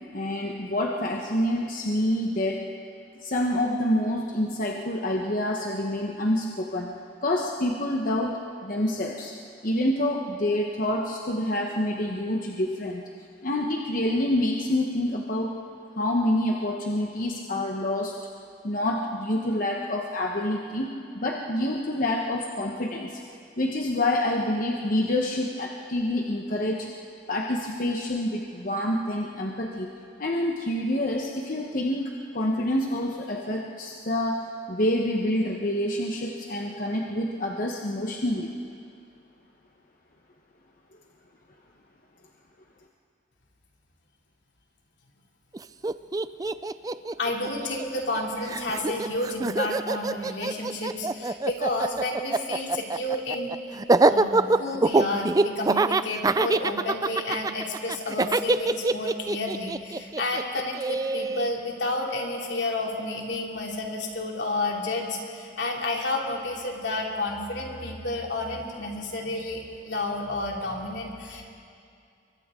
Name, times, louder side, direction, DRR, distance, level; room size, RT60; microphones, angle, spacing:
voice 1, 0.1-2.7 3.2-6.9 7.2-9.3 9.6-13.0 13.4-15.6 16.0-18.2 18.6-20.9 21.1-23.2 23.6-26.9 27.3-29.9 30.2-38.5, left 1 dB, 50° left, 0 dB, 1.1 m, -27 dB
Laughter, 45.5-45.6 45.8-48.2 48.5-61.5, right 3 dB, 20° right, 0.4 m, -24 dB
voice 2, 47.2-53.5 54.0-71.5, left 2 dB, 75° left, -1 dB, 3.0 m, -31 dB
29.0 x 23.5 x 3.8 m, 2.4 s
head